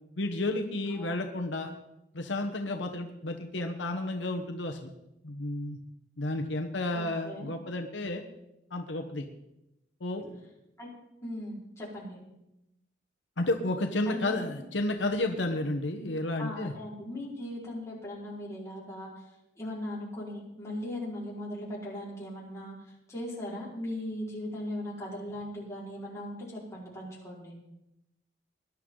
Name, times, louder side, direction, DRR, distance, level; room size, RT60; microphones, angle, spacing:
voice 1, 0.2-1.7 2.1-4.9 5.2-5.8 6.2-8.2 8.7-9.2 10.0-10.2 13.4-16.7, left 2 dB, 75° left, 3 dB, 1.1 m, -31 dB
voice 2, 6.9-7.5 10.8-10.9 11.2-12.2 14.1-14.5 16.4-19.2 19.6-27.5, left 1 dB, 15° left, -6 dB, 4.8 m, -39 dB
20.0 x 11.0 x 3.9 m, 0.90 s
head